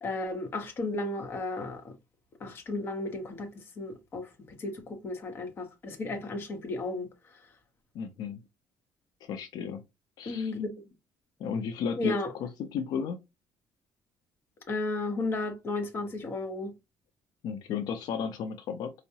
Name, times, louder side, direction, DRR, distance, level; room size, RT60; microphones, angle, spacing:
voice 1, 0.0-1.9 2.4-4.3 4.6-7.1 10.3-10.7 12.0-12.3 14.7-16.7, left 2 dB, 30° left, 0.8 m, -34 dB
voice 2, 7.9-8.4 9.2-9.8 10.2-10.6 11.4-13.2 17.4-18.9, left 6 dB, 65° left, 0.4 m, -34 dB
4.5 x 2.0 x 2.7 m
cardioid pair, 165°, 7 cm